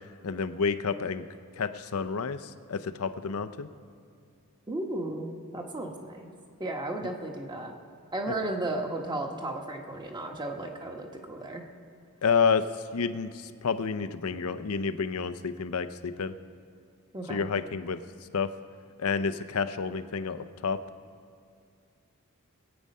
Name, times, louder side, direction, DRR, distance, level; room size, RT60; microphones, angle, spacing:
voice 1, 0.2-1.3 1.6-3.7 7.0-7.1 8.3-8.4 12.2-12.7 12.9-16.3 17.3-18.0 18.3-18.5 19.0-20.8, left 5 dB, 70° left, 11 dB, 0.6 m, -29 dB
voice 2, 4.7-6.3 6.6-7.7 8.1-11.6 17.1-17.5, right 2 dB, 20° right, 2 dB, 1.3 m, -34 dB
21.0 x 8.8 x 5.5 m, 2.3 s
head